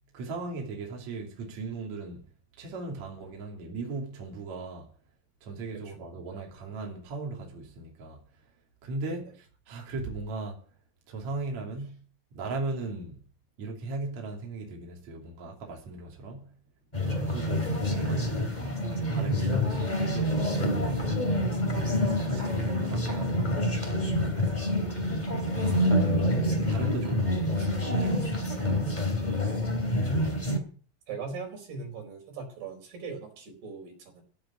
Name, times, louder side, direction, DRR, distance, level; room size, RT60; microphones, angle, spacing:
voice 1, 0.1-2.2 2.6-4.9 5.4-8.2 8.8-10.7 11.1-12.0 12.3-13.2 13.6-16.5 17.0-21.2 21.8-23.8 24.2-26.2 26.7-28.5, right 3 dB, 45° right, 4.0 m, -38 dB
voice 2, 5.7-6.5 9.1-9.2 27.6-27.7 30.2-30.3 31.1-34.2, right 5 dB, 75° right, 6.4 m, -41 dB
sound 1, 16.9-30.6, left 1 dB, 15° left, 2.1 m, -27 dB
16.0 x 7.6 x 9.9 m
omnidirectional pair, 4.7 m